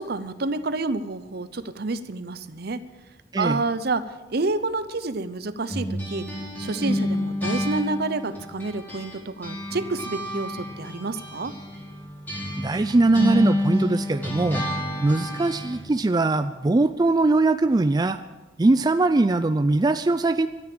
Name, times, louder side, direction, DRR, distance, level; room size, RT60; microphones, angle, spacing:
voice 1, 0.0-2.8 3.4-6.3 6.6-11.5, right 3 dB, 60° right, 13 dB, 0.8 m, -29 dB
sound 1, 5.7-9.2 9.4-15.8, left 1 dB, 10° left, 4.7 m, -29 dB
voice 2, 12.6-14.6 15.0-18.2 18.6-20.5, right 2 dB, 20° right, 10 dB, 0.4 m, -21 dB
13.0 x 9.4 x 8.8 m, 1.2 s
head